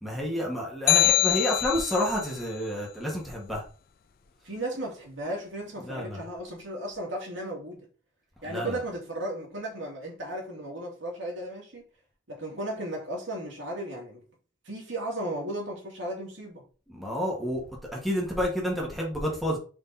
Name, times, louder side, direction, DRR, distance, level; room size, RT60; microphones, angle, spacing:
voice 1, 0.0-3.6 5.8-6.2 8.4-8.8 16.9-17.6 17.9-19.6, equal, ahead, 1.9 m, -29 dB
sound 1, 0.9-2.3, left 13 dB, 50° left, 0.3 m, -23 dB
voice 2, 4.4-7.8 8.4-11.8 12.3-14.2 14.6-16.6, right 1 dB, 75° right, 2.7 m, -35 dB
5.1 x 4.9 x 4.3 m
head